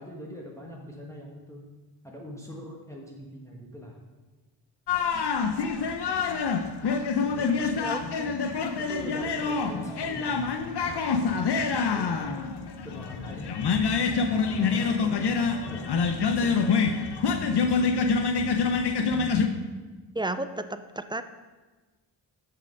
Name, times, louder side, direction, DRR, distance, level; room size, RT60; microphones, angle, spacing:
voice 1, 0.0-1.7 2.0-4.0 7.2-8.0 8.8-11.0 11.5-12.4 12.8-13.6 14.2-16.8 17.5-18.2, equal, 5° left, -2 dB, 1.3 m, -43 dB
sound 1, 4.9-19.5, left 5 dB, 60° left, 0.8 m, -26 dB
voice 2, 7.8-8.3 18.0-18.2 20.1-21.2, right 2 dB, 10° right, 11 dB, 0.4 m, -33 dB
6.8 x 5.8 x 5.3 m, 1.3 s
cardioid pair, 50°, 47 cm